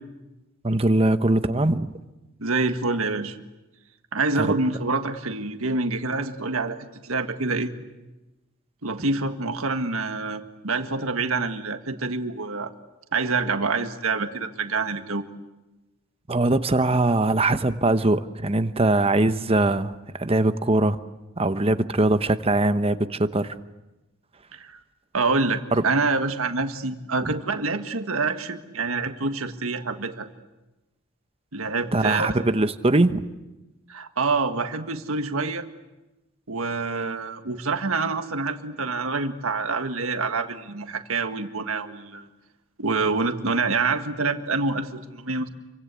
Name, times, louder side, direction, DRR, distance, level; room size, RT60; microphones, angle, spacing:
voice 1, 0.6-2.0 4.4-4.5 16.3-21.0 21.4-23.6 25.7-25.8 27.2-27.3 31.9-33.3, right 2 dB, 25° right, 11 dB, 1.0 m, -21 dB
voice 2, 2.4-3.3 4.1-7.7 8.8-12.7 13.1-15.3 24.5-24.8 25.1-30.3 31.5-32.3 33.9-35.6 36.5-42.3 42.8-45.5, right 3 dB, 80° right, 7 dB, 1.7 m, -26 dB
28.5 x 24.5 x 8.4 m, 1.0 s
head